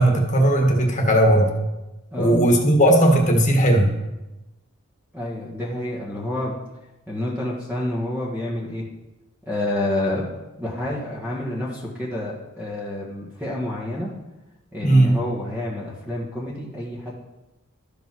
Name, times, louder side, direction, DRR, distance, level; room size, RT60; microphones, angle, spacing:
voice 1, 0.0-1.5 2.2-3.9 14.8-15.2, right 1 dB, 35° left, 2 dB, 1.7 m, -17 dB
voice 2, 2.1-2.4 5.1-6.6 7.1-8.9 9.5-10.3 10.6-14.1 14.7-17.1, left 1 dB, 10° right, -6 dB, 1.6 m, -28 dB
12.5 x 5.3 x 6.1 m, 1.0 s
head